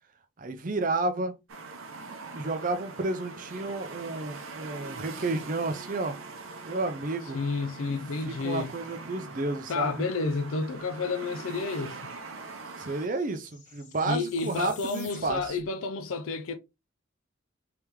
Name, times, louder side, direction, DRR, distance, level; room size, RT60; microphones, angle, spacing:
voice 1, 0.4-1.3 2.3-6.2 6.6-7.4 8.2-10.0 12.8-15.4, right 2 dB, 40° right, 0.5 m, -31 dB
sound 1, 1.5-13.1, right 3 dB, 80° right, 0.8 m, -43 dB
voice 2, 7.3-8.7 9.7-12.1 14.1-16.6, left 4 dB, 80° left, 0.4 m, -31 dB
sound 2, 11.1-11.2 11.4-15.7, left 5 dB, 35° left, 1.0 m, -51 dB
3.5 x 3.4 x 3.0 m
head